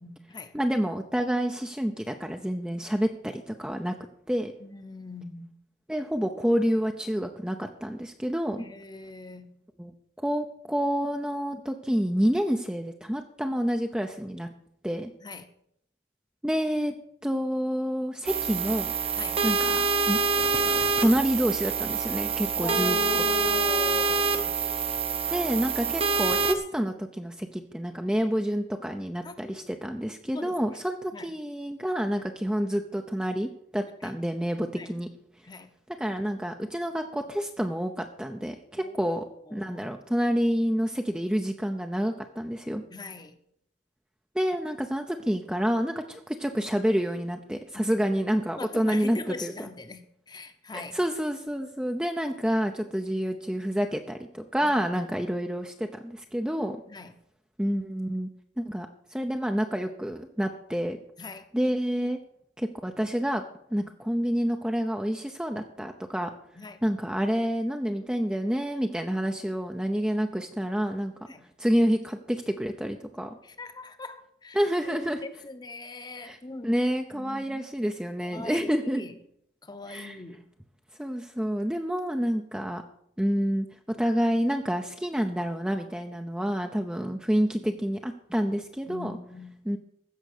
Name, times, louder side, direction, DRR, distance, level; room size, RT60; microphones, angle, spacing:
voice 1, 0.0-0.5 4.6-5.5 8.6-9.6 15.2-15.5 19.1-19.4 22.6-24.6 29.2-29.7 30.3-30.6 31.1-31.3 34.0-34.1 34.7-35.0 35.4-35.7 38.7-39.2 39.5-39.8 42.8-43.4 48.5-51.0 54.6-54.8 56.9-57.1 61.2-61.5 66.5-66.8 71.3-71.4 73.4-76.9 77.1-77.7 78.2-79.1 79.6-80.4 87.5-87.8 88.9-89.5, left 2 dB, 20° left, 0.9 m, -41 dB
voice 2, 0.5-4.0 4.3-4.5 5.9-8.6 9.8-9.9 10.2-14.5 14.8-15.1 16.4-16.9 17.2-18.9 19.4-20.2 21.0-23.3 25.3-35.1 36.0-39.2 39.5-42.8 44.3-49.5 50.7-56.8 57.6-58.3 58.6-61.0 61.5-62.2 62.6-63.4 63.7-66.3 66.8-71.1 71.6-73.4 74.5-75.2 76.2-76.4 76.6-79.0 79.9-80.2 81.0-82.8 83.2-89.2 89.7-89.8, equal, 5° right, 0.6 m, -28 dB
sound 1, 18.3-26.5, right 4 dB, 30° right, 0.9 m, -26 dB
15.5 x 6.5 x 6.6 m
head